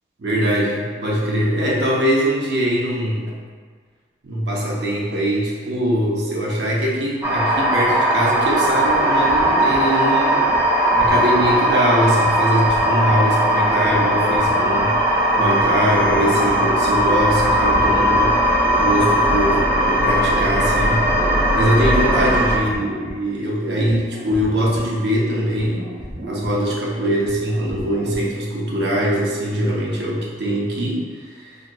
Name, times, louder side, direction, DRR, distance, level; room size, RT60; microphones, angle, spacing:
voice 1, 0.2-3.3 4.2-10.5 10.9-15.0 15.3-21.0 21.5-25.9 26.2-31.6, equal, 65° right, -4 dB, 0.7 m, -22 dB
sound 1, 7.2-22.6, equal, 10° right, 0.5 m, -18 dB
sound 2, 8.6-28.6, right 1 dB, 80° right, 1.2 m, -35 dB
3.7 x 2.9 x 2.2 m, 1.6 s
head